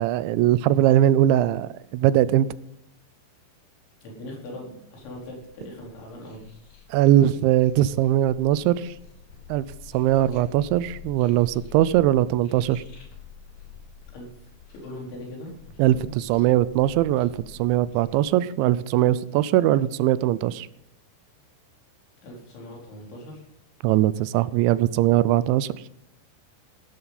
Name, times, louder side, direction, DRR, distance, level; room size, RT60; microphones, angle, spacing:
voice 1, 0.0-2.5 6.9-8.9 9.5-9.7 9.9-12.8 15.8-17.3 17.6-20.7 23.8-25.7, right 13 dB, 85° right, 17 dB, 3.0 m, -20 dB
voice 2, 4.0-6.4 7.2-7.3 14.1-14.3 14.7-16.1 22.2-23.4, left 1 dB, 85° left, -1 dB, 6.7 m, -40 dB
sound 1, 5.0-18.2, left 6 dB, 55° left, 5.0 m, -47 dB
17.0 x 12.5 x 4.1 m, 0.76 s
omnidirectional pair, 5.2 m